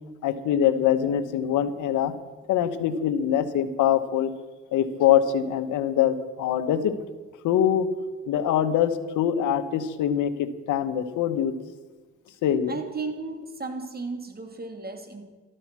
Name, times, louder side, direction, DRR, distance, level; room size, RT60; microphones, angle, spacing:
voice 1, 0.2-2.1 2.5-4.3 4.7-6.9 7.4-7.9 8.3-11.5 12.4-12.8, left 9 dB, 85° left, 11 dB, 1.2 m, -23 dB
voice 2, 12.7-15.3, right 3 dB, 30° right, 5 dB, 2.7 m, -34 dB
13.5 x 12.5 x 6.1 m, 1.4 s
cardioid pair, 90°, 30 cm